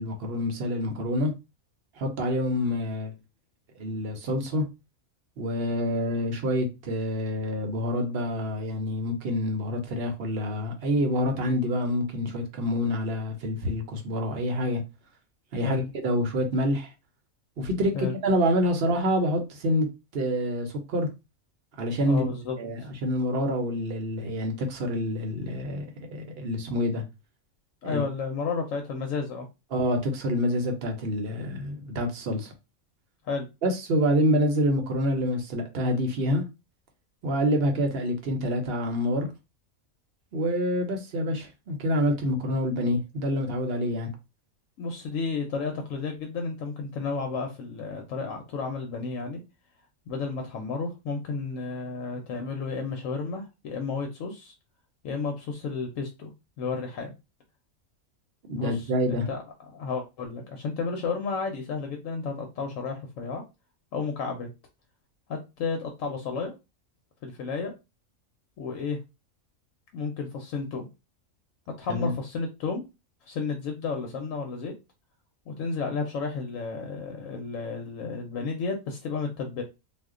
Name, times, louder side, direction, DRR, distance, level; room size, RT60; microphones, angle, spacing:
voice 1, 0.0-1.3 2.0-3.2 3.8-4.6 5.4-14.8 15.5-16.9 17.6-19.9 20.1-21.1 21.8-22.3 22.6-27.0 27.8-28.0 29.7-32.5 33.6-36.4 37.2-39.3 40.3-44.1 58.5-59.3 71.9-72.1, equal, 55° right, 0.8 m, -27 dB
voice 2, 22.0-22.6 27.8-29.5 33.2-33.5 44.8-49.4 50.1-54.5 55.0-56.3 56.6-57.1 58.6-59.4 59.7-63.4 63.9-64.5 65.3-66.5 67.2-67.7 68.6-69.0 69.9-70.9 71.8-72.8 73.3-74.7 75.5-79.6, left 4 dB, 75° left, 1.0 m, -32 dB
2.4 x 2.1 x 3.6 m
omnidirectional pair, 1.4 m